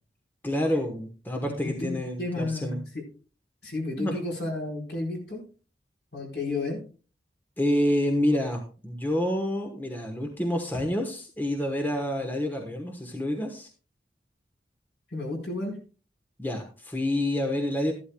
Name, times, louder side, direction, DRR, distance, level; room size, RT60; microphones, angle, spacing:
voice 1, 0.4-2.8 4.0-4.1 7.6-13.7 16.4-17.9, left 1 dB, 10° left, 2 dB, 1.1 m, -28 dB
voice 2, 1.4-2.8 3.6-5.4 6.1-6.8 15.1-15.8, left 2 dB, 65° left, -1 dB, 4.3 m, -32 dB
13.5 x 11.5 x 2.3 m, 0.36 s
head